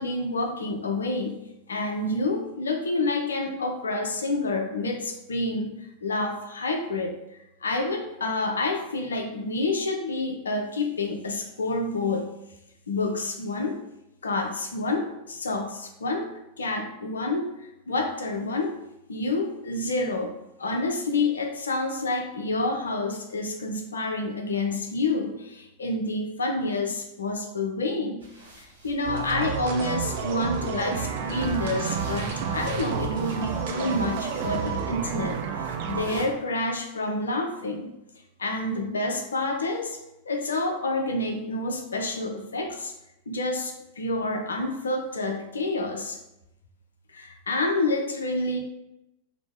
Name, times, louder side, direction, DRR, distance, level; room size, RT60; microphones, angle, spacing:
voice 1, 0.0-1.4 1.7-7.1 7.6-12.3 12.9-13.8 14.2-18.8 19.1-20.3 20.6-28.3 28.6-37.9 38.4-40.0 40.3-42.9 43.3-46.2 47.1-48.6, left 2 dB, 70° left, 3 dB, 0.5 m, -28 dB
sound 1, 28.2-36.2, right 1 dB, 80° right, 0.9 m, -47 dB
sound 2, 29.0-36.3, right 7 dB, 50° right, 0.4 m, -30 dB
2.9 x 2.1 x 3.5 m, 0.89 s
figure-of-eight pair, 90°, 0 cm